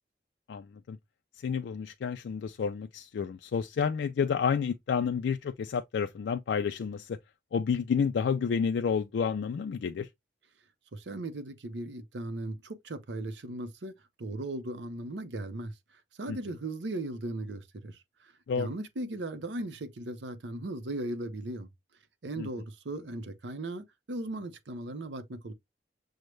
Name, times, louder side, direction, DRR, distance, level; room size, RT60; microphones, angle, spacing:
voice 1, 0.5-1.0 1.4-7.2 7.5-10.1 16.3-16.4 18.5-18.7 22.4-22.5, left 6 dB, 75° left, 0.3 m, -30 dB
voice 2, 10.9-15.7 16.2-21.7 22.2-25.5, right 1 dB, 80° right, 0.7 m, -37 dB
6.4 x 2.1 x 3.1 m
head